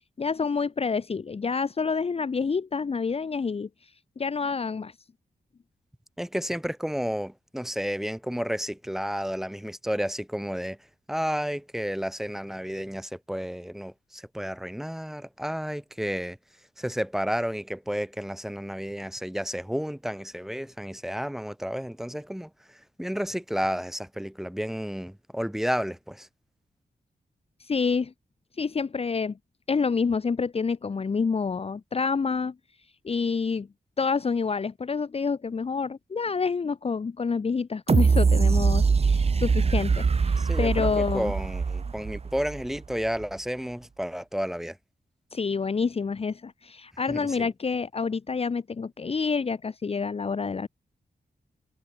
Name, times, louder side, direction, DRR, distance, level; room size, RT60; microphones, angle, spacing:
voice 1, 0.2-3.7 4.2-4.9 27.6-28.1 28.6-29.4 29.7-32.5 33.0-33.7 34.0-41.3 45.3-50.7, left 5 dB, 40° left, 1.0 m, -28 dB
voice 2, 6.2-10.8 11.1-16.4 16.8-26.3 40.4-44.8 47.1-47.5, equal, ahead, 3.6 m, -31 dB
sound 1, 37.9-42.8 43.2-43.3, right 5 dB, 40° right, 1.2 m, -23 dB
wide cardioid pair, 145°, 16 cm